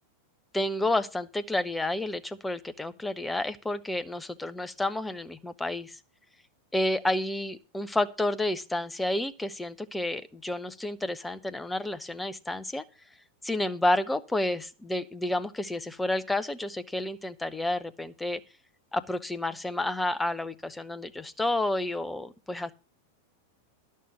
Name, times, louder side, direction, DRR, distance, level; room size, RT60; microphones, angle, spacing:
voice 1, 0.5-6.0 6.7-12.8 13.4-18.4 18.9-22.7, left 1 dB, 5° left, 13 dB, 0.8 m, -30 dB
11.0 x 6.5 x 6.6 m, 0.32 s
figure-of-eight pair, 90°, 0 cm